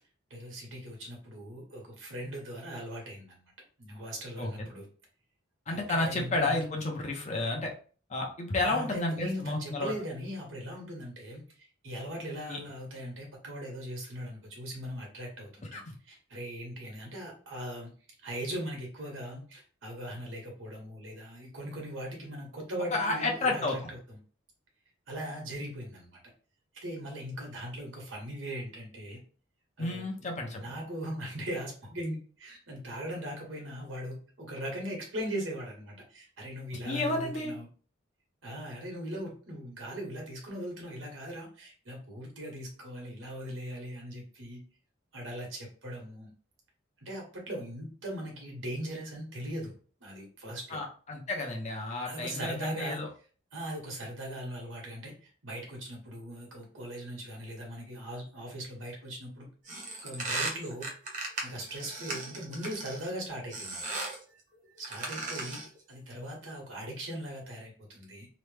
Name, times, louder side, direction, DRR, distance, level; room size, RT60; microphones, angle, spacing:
voice 1, 0.3-3.5 3.8-4.9 5.7-6.5 8.6-17.9 18.2-24.2 25.1-26.2 26.8-29.2 29.8-30.1 30.5-37.7 38.4-44.6 45.1-46.3 47.0-49.7 50.0-50.8 52.0-53.0 53.5-59.5 60.0-60.9 61.4-63.8 64.8-68.3, equal, 75° right, -1 dB, 1.2 m, -39 dB
voice 2, 5.7-7.7 8.1-9.9 12.5-12.6 15.7-15.9 22.9-23.9 29.8-30.6 36.9-37.5 50.7-53.1, left 2 dB, 35° left, 1 dB, 0.6 m, -31 dB
sound 1, 59.7-63.1 63.5-64.2 64.8-65.8, right 3 dB, 40° right, 0.8 m, -37 dB
3.0 x 2.1 x 3.2 m, 0.40 s
head